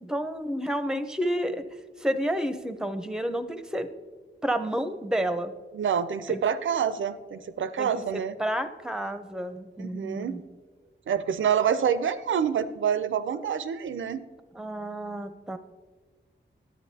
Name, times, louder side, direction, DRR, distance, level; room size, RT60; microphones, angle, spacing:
voice 1, 0.0-1.6 2.0-3.9 4.4-5.5 6.3-6.4 7.8-7.9 8.4-10.4 14.5-15.6, equal, 5° right, 10 dB, 0.6 m, -30 dB
voice 2, 5.7-8.3 9.8-10.4 11.1-14.2, right 8 dB, 85° right, 13 dB, 0.4 m, -27 dB
11.0 x 8.5 x 2.7 m, 1.4 s
wide cardioid pair, 70°, 20 cm